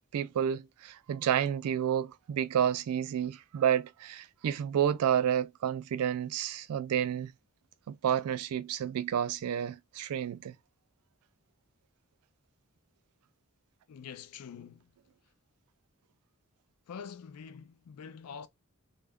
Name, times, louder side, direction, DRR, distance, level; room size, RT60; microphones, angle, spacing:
voice 1, 0.1-7.3 7.9-10.6, right 9 dB, 85° right, 0.3 m, -30 dB
voice 2, 13.9-14.9 16.9-18.5, left 7 dB, 90° left, 0.4 m, -45 dB
2.3 x 2.1 x 3.4 m
head